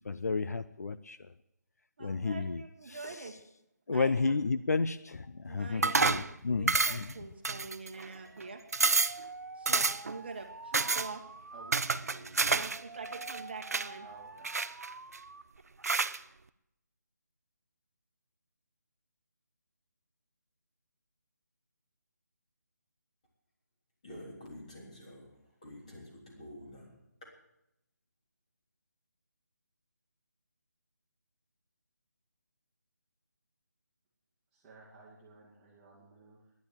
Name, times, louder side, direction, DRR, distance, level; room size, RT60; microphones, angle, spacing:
voice 1, 0.0-1.2 2.0-2.6 2.9-3.3 3.9-7.1, left 4 dB, 60° left, 13 dB, 0.6 m, -32 dB
voice 2, 2.0-3.3 3.9-4.4 5.5-8.6 9.5-11.2 12.5-14.1, right 4 dB, 35° right, 4 dB, 1.3 m, -45 dB
sound 1, 5.8-6.3 6.7-7.1 7.4-8.1 8.4-8.5 8.7-9.2 9.7-10.1 10.7-11.1 11.7-12.8 13.1-13.9 14.4-15.2 15.8-16.2, right 4 dB, 55° right, 0.6 m, -29 dB
Alarm, 8.2-15.4 15.8-16.4, right 3 dB, 85° right, 1.1 m, -48 dB
voice 3, 11.5-12.6 14.0-14.5 34.5-36.5, right 3 dB, 5° right, -6 dB, 2.0 m, -55 dB
voice 4, 24.0-26.9 27.2-27.3, left 1 dB, 25° left, -3 dB, 3.6 m, -49 dB
11.5 x 10.5 x 8.8 m, 0.84 s
figure-of-eight pair, 175°, 10 cm